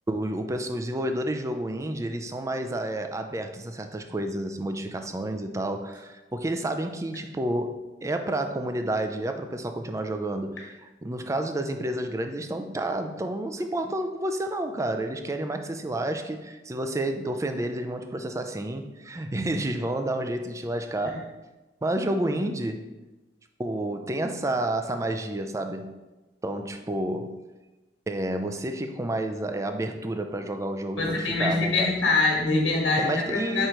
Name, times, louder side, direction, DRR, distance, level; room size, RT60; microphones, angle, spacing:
voice 1, 0.1-7.8 8.0-21.3 21.8-22.9 23.6-26.0 26.4-27.4 28.1-31.9 33.0-33.7, right 1 dB, 15° right, 6 dB, 0.4 m, -30 dB
voice 2, 31.0-33.7, left 3 dB, 85° left, -1 dB, 1.4 m, -24 dB
4.5 x 4.5 x 5.1 m, 1.1 s
head